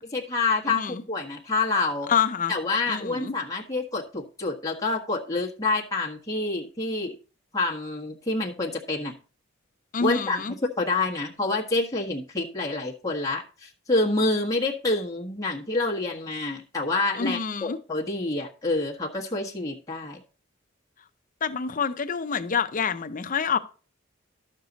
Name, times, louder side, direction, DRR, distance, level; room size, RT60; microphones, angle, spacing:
voice 1, 0.0-2.1 2.5-7.2 7.5-9.1 10.0-10.4 10.8-20.2, left 3 dB, 15° left, 1.5 m, -27 dB
voice 2, 0.7-1.0 2.1-2.5 2.9-3.3 9.9-10.5 17.2-17.8 21.4-23.6, left 6 dB, 40° left, 0.6 m, -27 dB
12.0 x 6.7 x 4.0 m
head